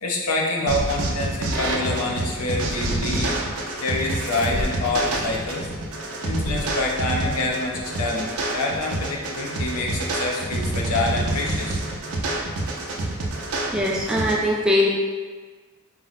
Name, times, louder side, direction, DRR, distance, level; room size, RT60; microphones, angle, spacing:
voice 1, 0.0-3.4 3.8-5.7 6.2-11.8, left 2 dB, 85° left, -1 dB, 0.7 m, -26 dB
sound 1, 0.7-14.4, right 2 dB, 75° right, 0.6 m, -27 dB
sound 2, 2.9-3.7 4.5-5.4 6.5-7.3, left 1 dB, 50° left, 0.8 m, -34 dB
voice 2, 13.7-14.9, left 1 dB, 5° right, -4 dB, 0.5 m, -21 dB
4.4 x 2.1 x 4.0 m, 1.4 s
head